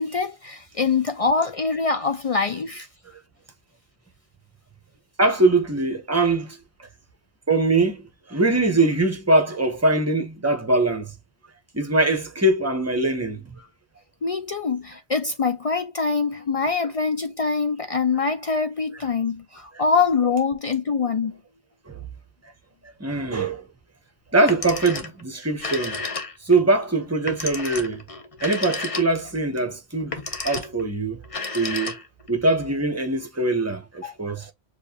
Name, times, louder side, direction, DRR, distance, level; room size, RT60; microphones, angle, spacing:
voice 1, 0.0-2.9 14.2-21.4 34.0-34.1, left 4 dB, 50° left, 0.4 m, -24 dB
voice 2, 5.2-6.6 7.5-8.0 8.3-11.1 11.7-13.7 21.9-22.0 23.0-23.6 24.3-26.0 26.5-28.0 28.4-30.2 30.4-31.2 31.5-32.0 32.3-34.5, right 2 dB, 15° right, 0.8 m, -22 dB
Telephone, 24.4-25.2 25.5-26.6 27.3-29.4 30.0-30.8 31.2-32.3, left 3 dB, 35° left, 0.8 m, -31 dB
6.8 x 2.4 x 2.8 m
omnidirectional pair, 1.1 m